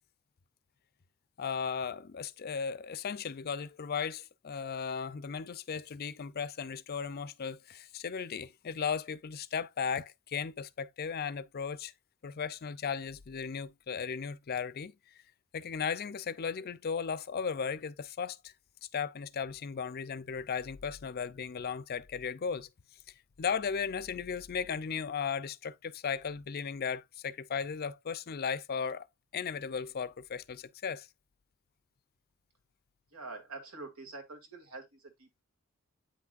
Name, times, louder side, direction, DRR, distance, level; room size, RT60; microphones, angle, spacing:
voice 1, 1.4-11.9 12.2-14.9 15.5-18.5 18.9-22.7 23.4-29.1 29.3-31.1, left 6 dB, 45° left, 0.5 m, -36 dB
voice 2, 33.1-35.4, right 3 dB, 90° right, 2.2 m, -46 dB
8.5 x 5.8 x 2.4 m
head